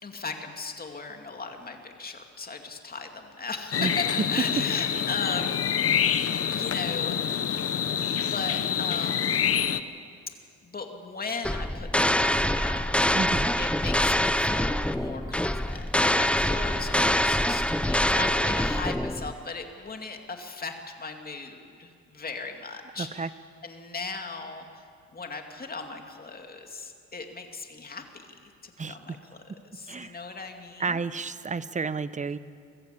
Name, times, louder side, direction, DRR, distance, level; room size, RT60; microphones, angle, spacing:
voice 1, 0.0-5.6 6.2-7.1 8.1-9.5 10.6-13.2 13.6-23.3 23.6-24.8 25.1-29.2 29.7-31.0, left 4 dB, 30° left, 4 dB, 2.5 m, -38 dB
sound 1, 3.7-9.8, left 8 dB, 50° left, 1.0 m, -26 dB
sound 2, 11.4-19.3, left 1 dB, 5° left, 0.6 m, -25 dB
voice 2, 13.1-13.5 23.0-23.3 28.8-29.2 29.9-30.2 30.8-32.4, right 4 dB, 25° right, 14 dB, 0.8 m, -31 dB
23.5 x 15.0 x 8.5 m, 2.3 s
cardioid pair, 90°, 30 cm